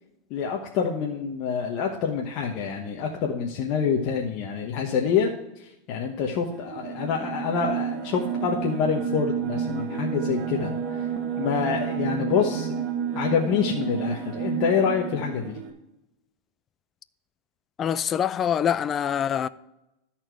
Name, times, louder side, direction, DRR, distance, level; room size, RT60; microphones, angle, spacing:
voice 1, 0.3-5.3 5.6-11.1 11.4-12.7 13.1-15.6, left 6 dB, 50° left, 1.1 m, -26 dB
sound 1, 6.5-15.7, right 7 dB, 50° right, 1.5 m, -30 dB
voice 2, 17.8-19.5, left 9 dB, 25° left, 0.3 m, -25 dB
13.0 x 4.3 x 4.6 m
supercardioid pair, 135°, 0 cm